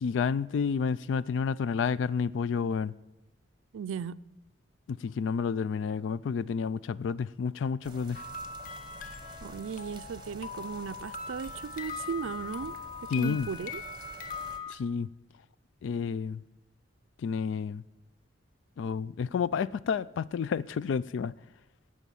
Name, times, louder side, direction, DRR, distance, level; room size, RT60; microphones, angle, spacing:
voice 1, 0.0-2.9 4.9-8.2 13.1-13.5 14.7-15.1 15.8-16.4 17.2-17.8 18.8-21.3, left 6 dB, 70° left, 0.3 m, -30 dB
voice 2, 3.7-4.2 9.4-12.7 13.0-13.8, right 6 dB, 90° right, 0.4 m, -36 dB
sound 1, 7.8-14.6, right 2 dB, 25° right, 1.1 m, -49 dB
sound 2, 8.1-14.7, left 5 dB, 45° left, 0.9 m, -41 dB
17.5 x 6.4 x 7.0 m
head